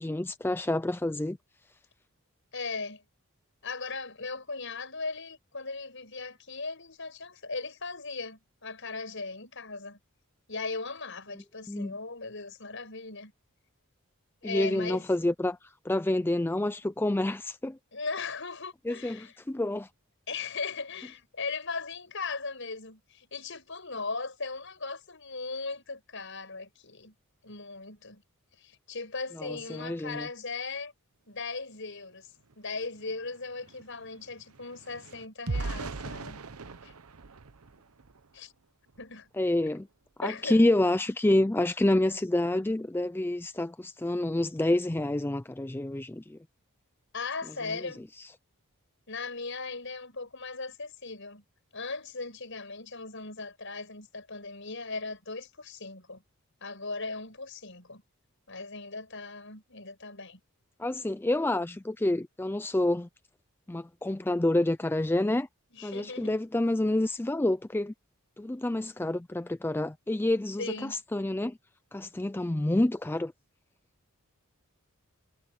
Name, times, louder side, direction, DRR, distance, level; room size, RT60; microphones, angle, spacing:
voice 1, 0.0-1.4 11.7-12.0 14.4-17.8 18.9-19.9 29.4-30.3 39.4-39.9 40.2-46.4 47.7-47.9 48.2-48.3 60.8-63.1 63.7-65.5 65.8-67.9 68.4-71.6 71.9-73.3, left 1 dB, 10° left, 0.4 m, -28 dB
voice 2, 2.5-3.0 3.6-10.0 10.5-13.3 14.4-15.1 17.9-19.3 20.3-27.1 27.4-28.2 28.6-30.9 31.3-32.3 32.6-36.4 36.8-36.9 38.3-38.5 39.0-39.3 40.2-40.6 47.1-48.0 49.1-51.4 51.7-56.2 56.6-58.0 58.5-60.4 65.7-66.4 70.6-71.0, left 4 dB, 60° left, 7.5 m, -38 dB
sound 1, 32.5-32.6 32.9-38.4 38.9-39.1 39.5-39.7, right 3 dB, 80° right, 0.9 m, -40 dB
head